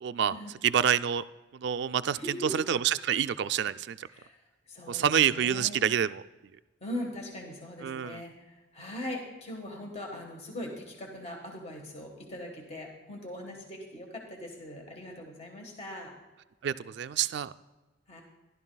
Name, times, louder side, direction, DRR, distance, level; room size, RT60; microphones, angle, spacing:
voice 1, 0.0-0.3 0.6-1.2 1.5-2.2 2.5-4.1 4.9-6.2 7.8-8.2 16.6-17.5, right 9 dB, 55° right, 12 dB, 0.3 m, -27 dB
voice 2, 2.1-2.5 4.0-4.4 4.7-5.9 6.8-16.1 18.1-18.2, left 1 dB, 30° left, 1 dB, 1.5 m, -41 dB
15.0 x 11.5 x 2.3 m, 1.2 s
head